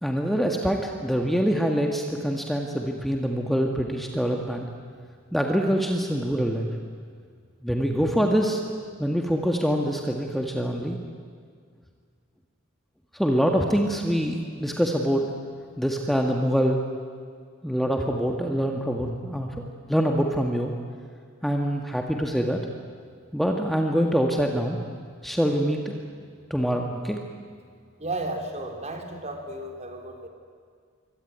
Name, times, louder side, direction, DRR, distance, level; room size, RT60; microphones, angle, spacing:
voice 1, 0.0-4.7 5.3-6.7 7.6-8.6 9.0-11.0 13.2-15.3 15.8-16.8 17.6-19.6 19.9-20.7 21.4-22.6 23.3-24.8 25.2-26.0 26.5-27.2, equal, ahead, 2 dB, 1.7 m, -25 dB
voice 2, 28.0-30.3, right 2 dB, 35° right, 3 dB, 3.8 m, -33 dB
26.0 x 24.0 x 9.5 m, 2.1 s
head